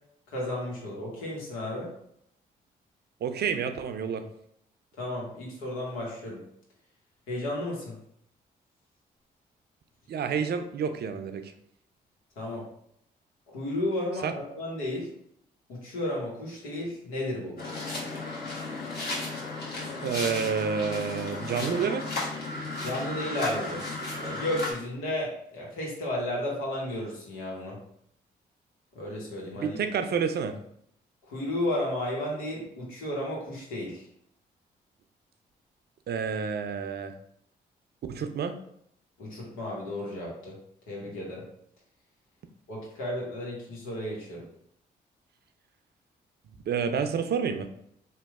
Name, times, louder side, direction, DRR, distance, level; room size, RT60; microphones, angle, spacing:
voice 1, 0.3-1.9 5.0-6.4 7.3-8.0 12.4-12.6 13.5-15.1 15.7-17.6 22.8-23.8 24.2-27.8 28.9-29.8 31.3-34.1 39.2-40.6 40.9-41.4 42.7-44.4, left 1 dB, 85° left, -3 dB, 1.0 m, -33 dB
voice 2, 3.2-4.3 10.1-11.5 14.2-14.3 20.0-22.0 29.5-30.5 36.1-37.1 38.1-38.6 46.7-47.7, right 6 dB, 55° right, 8 dB, 0.5 m, -29 dB
sound 1, 17.6-24.7, left 2 dB, 50° left, 1.4 m, -34 dB
3.0 x 2.2 x 3.5 m, 0.72 s
hypercardioid pair, 45°, 21 cm